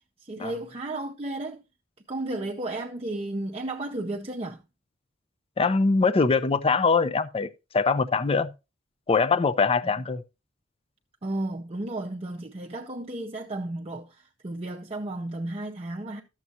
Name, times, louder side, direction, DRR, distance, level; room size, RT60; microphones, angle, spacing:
voice 1, 0.2-1.6 2.1-4.6 9.8-9.9 11.2-16.2, right 2 dB, 30° right, 0.6 m, -33 dB
voice 2, 5.6-8.5 9.1-10.2, left 4 dB, 30° left, 0.4 m, -23 dB
12.0 x 7.3 x 2.7 m
head